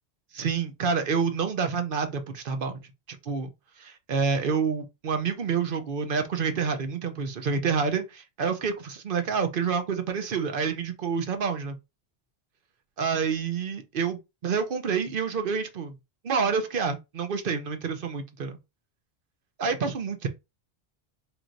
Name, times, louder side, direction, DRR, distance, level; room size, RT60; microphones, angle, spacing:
voice 1, 0.3-2.8 3.1-3.5 3.8-11.8 13.0-15.9 16.2-18.6 19.6-20.3, right 5 dB, 55° right, 0.9 m, -28 dB
4.4 x 3.1 x 2.6 m
omnidirectional pair, 1.1 m